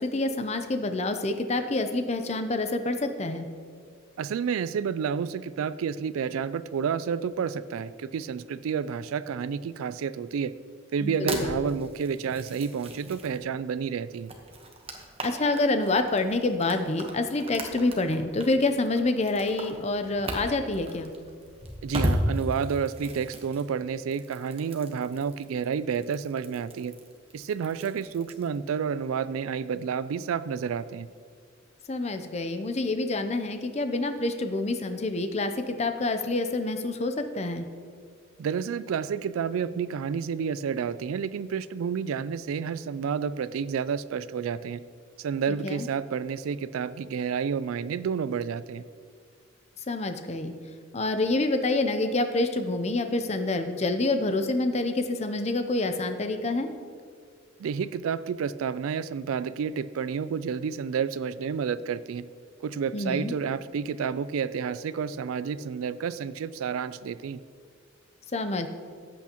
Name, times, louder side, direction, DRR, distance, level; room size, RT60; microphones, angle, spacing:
voice 1, 0.0-3.5 11.0-11.6 15.2-21.1 31.9-37.7 45.6-45.9 49.9-50.5 50.9-56.7 62.9-63.3 68.3-68.7, left 2 dB, 30° left, 8 dB, 0.6 m, -27 dB
voice 2, 4.2-10.5 10.9-14.3 21.8-26.9 27.3-31.1 38.4-44.8 45.2-48.8 57.6-62.2 62.6-67.4, right 6 dB, 85° right, 15 dB, 0.3 m, -30 dB
sound 1, 11.0-13.4 14.1-28.6, equal, 30° right, 1.1 m, -36 dB
14.0 x 8.4 x 3.0 m, 2.1 s
head